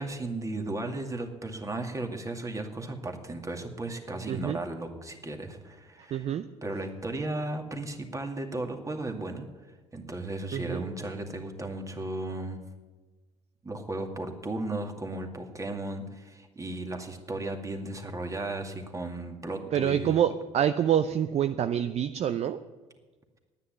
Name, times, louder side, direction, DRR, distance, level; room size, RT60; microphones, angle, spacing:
voice 1, 0.0-6.3 6.6-9.5 9.9-12.6 13.6-20.2, right 2 dB, 20° right, 4 dB, 2.2 m, -35 dB
voice 2, 4.3-4.6 6.1-6.4 10.5-10.8 19.7-22.6, right 9 dB, 40° right, 11 dB, 0.6 m, -26 dB
10.0 x 9.7 x 9.7 m, 1.2 s
hypercardioid pair, 60°, 16 cm